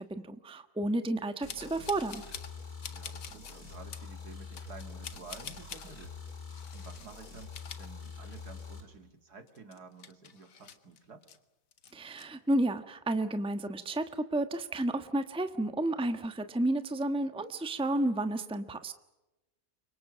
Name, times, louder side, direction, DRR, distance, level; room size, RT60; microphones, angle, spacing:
voice 1, 0.0-2.2 11.9-18.9, right 1 dB, 5° right, 8 dB, 1.2 m, -31 dB
sound 1, 1.4-8.8, left 5 dB, 60° left, 4.6 m, -45 dB
sound 2, 1.5-2.6 2.8-3.6 3.9-4.1 4.5-5.9 6.5-7.1 7.4-8.6 8.9-9.0 9.5-11.4 11.7-12.2, left 7 dB, 85° left, 2.1 m, -46 dB
voice 2, 2.9-6.1 6.7-11.3, right 4 dB, 65° right, 7 dB, 2.9 m, -51 dB
29.5 x 24.5 x 6.4 m, 1.0 s
omnidirectional pair, 1.8 m